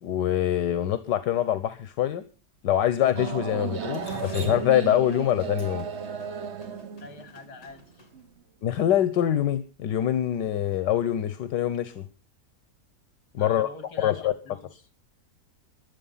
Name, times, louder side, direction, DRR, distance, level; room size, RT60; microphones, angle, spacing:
voice 1, 0.0-2.2 2.6-5.8 8.6-12.0 13.3-13.7 14.0-14.3, left 11 dB, 85° left, 13 dB, 1.6 m, -24 dB
sound 1, 3.1-8.2, right 6 dB, 45° right, 1.2 m, -34 dB
Drip, 3.9-8.1, left 2 dB, 55° left, 3.9 m, -41 dB
voice 2, 7.0-7.8 13.4-14.7, left 4 dB, 70° left, 10 dB, 2.8 m, -43 dB
22.5 x 8.0 x 5.6 m, 0.35 s
omnidirectional pair, 1.8 m